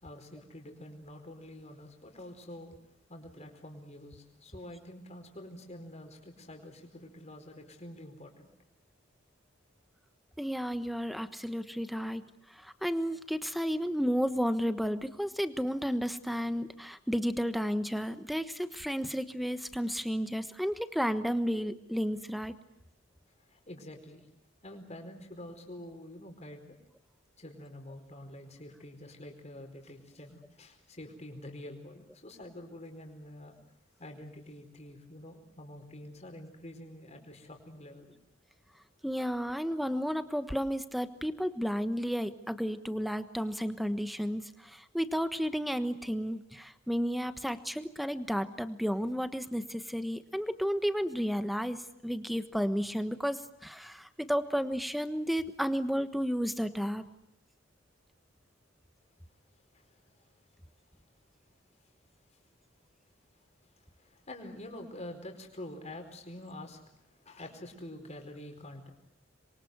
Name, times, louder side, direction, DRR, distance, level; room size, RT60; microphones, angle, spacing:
voice 1, 0.0-2.7 3.1-8.5 23.5-24.2 24.6-26.7 27.4-33.5 34.0-38.1 64.0-66.9 67.2-68.9, left 1 dB, 35° left, 4 dB, 4.6 m, -47 dB
voice 2, 10.4-12.2 12.6-22.5 39.0-51.8 52.0-57.0, equal, ahead, 11 dB, 1.2 m, -32 dB
27.0 x 23.0 x 8.0 m, 0.79 s
head